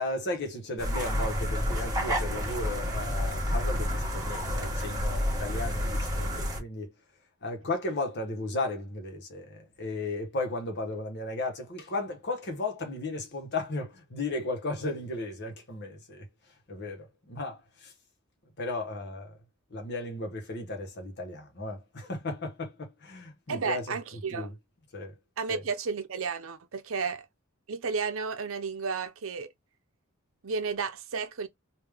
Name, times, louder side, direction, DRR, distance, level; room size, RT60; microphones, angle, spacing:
voice 1, 0.0-6.9 7.4-16.3 16.7-17.9 18.6-19.4 19.7-24.5 24.9-25.1 25.5-25.6, left 2 dB, 55° left, 1.2 m, -35 dB
sound 1, 0.8-6.6, equal, 15° right, 1.6 m, -30 dB
voice 2, 23.5-24.5 25.4-27.3 27.7-29.5 30.4-31.5, right 5 dB, 65° right, 0.7 m, -32 dB
3.6 x 2.7 x 3.4 m
head